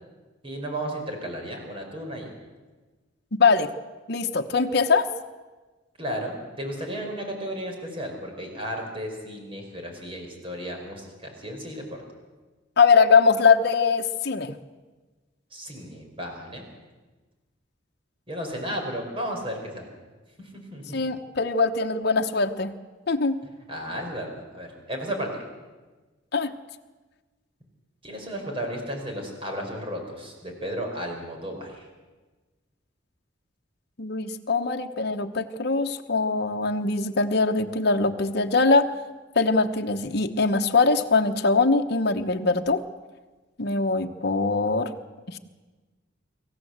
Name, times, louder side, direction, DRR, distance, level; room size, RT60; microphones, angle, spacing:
voice 1, 0.4-2.3 6.0-11.8 15.5-16.6 18.3-19.9 20.4-21.0 23.4-25.5 28.0-31.9, equal, 30° right, 2 dB, 4.7 m, -34 dB
voice 2, 3.4-3.7 4.1-5.1 12.8-14.5 20.9-22.7 23.1-23.4 26.3-26.5 34.0-38.9 39.4-42.8 43.6-44.9 45.3-45.4, left 4 dB, 60° left, 4 dB, 1.1 m, -22 dB
25.0 x 15.0 x 7.9 m, 1.3 s
head